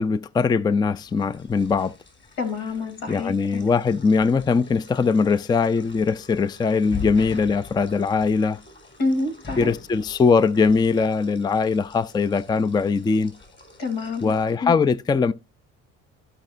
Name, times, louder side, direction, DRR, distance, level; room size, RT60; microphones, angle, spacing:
voice 1, 0.0-1.9 3.1-8.6 9.6-13.3 14.2-15.3, left 5 dB, 15° left, 0.4 m, -21 dB
sound 1, 0.9-14.5, left 5 dB, 35° left, 4.5 m, -43 dB
voice 2, 2.4-3.6 9.0-9.7 13.8-14.7, left 3 dB, 85° left, 3.1 m, -28 dB
14.0 x 5.5 x 2.5 m
supercardioid pair, 70°, 33 cm